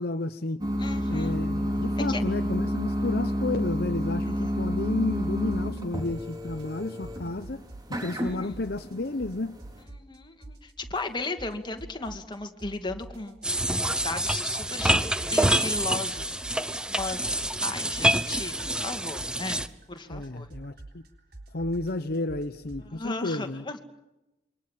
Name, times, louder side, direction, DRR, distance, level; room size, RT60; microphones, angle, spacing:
voice 1, 0.0-0.6 1.1-7.6 7.9-9.6 20.1-21.0 21.5-23.7, left 2 dB, 55° left, 9 dB, 1.0 m, -31 dB
sound 1, 0.6-9.8, equal, 20° right, 5.2 m, -29 dB
voice 2, 0.8-1.4 2.1-2.2 8.0-8.5 9.8-13.8 14.0-15.0 15.3-17.3 17.6-18.5 18.8-20.5 22.9-23.8, left 3 dB, 25° left, 6 dB, 2.4 m, -36 dB
sound 2, 5.5-5.8 6.1-8.0 8.2-10.2 10.4-12.3 12.6-16.7 17.0-22.9, right 2 dB, 55° right, 3.9 m, -45 dB
sound 3, 13.4-19.7, right 1 dB, 5° right, 0.9 m, -27 dB
27.5 x 24.5 x 7.5 m, 0.96 s
head